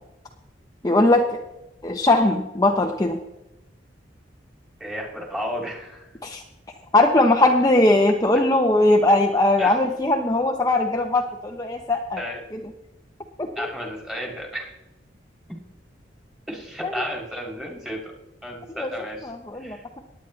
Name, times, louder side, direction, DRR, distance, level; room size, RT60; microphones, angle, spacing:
voice 1, 0.8-1.3 1.8-3.2 6.2-6.4 6.9-12.2 13.4-13.7 16.8-16.9 18.8-18.9 19.2-20.0, left 2 dB, 20° left, 2 dB, 0.8 m, -20 dB
voice 2, 4.8-6.1 9.6-9.8 12.2-12.4 13.6-14.7 16.5-18.1 18.4-19.3 19.6-19.8, equal, 5° right, 0 dB, 2.3 m, -32 dB
19.0 x 9.1 x 3.2 m, 0.95 s
head